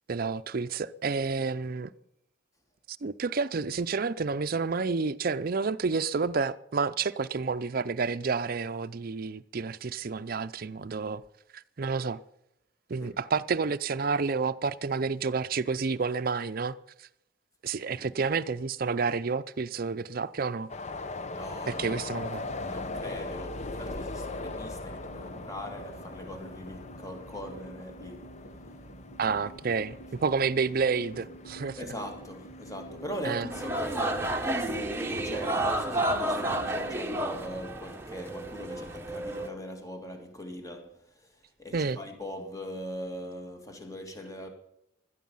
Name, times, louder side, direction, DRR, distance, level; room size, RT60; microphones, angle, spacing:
voice 1, 0.1-1.9 2.9-11.2 11.5-12.2 12.9-17.1 17.6-20.7 21.7-22.5 29.2-31.8 33.2-33.5 41.7-42.0, right 4 dB, 50° right, 0.6 m, -30 dB
sound 1, 20.7-33.5, left 2 dB, 40° left, 0.8 m, -40 dB
voice 2, 21.3-22.0 22.6-28.3 31.8-44.5, equal, 20° left, 2.1 m, -40 dB
sound 2, 22.0-36.9, right 1 dB, 80° left, 3.5 m, -48 dB
sound 3, 33.5-39.5, right 1 dB, 15° right, 1.2 m, -31 dB
17.0 x 12.5 x 5.6 m
head